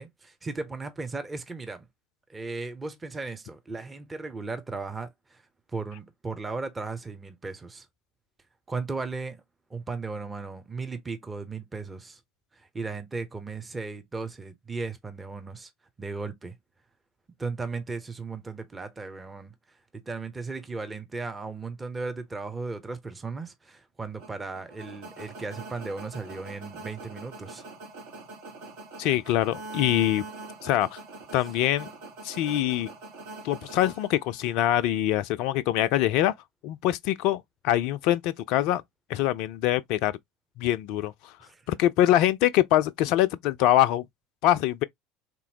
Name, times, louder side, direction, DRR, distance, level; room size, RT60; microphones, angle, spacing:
voice 1, 0.0-1.9 2.3-5.4 5.7-7.9 8.7-9.4 9.7-12.2 12.5-15.7 16.0-16.5 17.4-19.5 19.9-27.6 41.4-41.6, right 4 dB, 20° right, 0.7 m, -36 dB
sound 1, 24.2-34.6, right 3 dB, 60° right, 1.0 m, -43 dB
voice 2, 29.0-30.2 30.6-31.0 31.3-31.9 32.2-32.9 33.4-36.3 36.6-38.8 39.1-40.1 40.6-41.1 41.7-44.0 44.4-44.8, left 13 dB, 55° left, 0.3 m, -24 dB
3.6 x 2.9 x 2.8 m
figure-of-eight pair, 65°, 0 cm